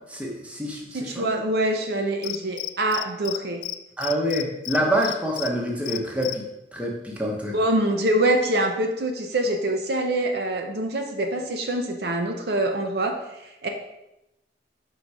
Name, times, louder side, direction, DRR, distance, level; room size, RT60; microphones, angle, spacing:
voice 1, 0.1-1.3 4.0-6.4 6.7-7.5, equal, 5° right, -2 dB, 0.9 m, -26 dB
voice 2, 0.9-3.6 7.5-13.7, right 1 dB, 60° right, 3 dB, 0.6 m, -25 dB
Cricket, 2.2-3.4 3.6-3.8 4.0-5.5 5.9-6.3, left 15 dB, 85° left, 0.3 m, -31 dB
5.5 x 3.8 x 4.7 m, 0.89 s
head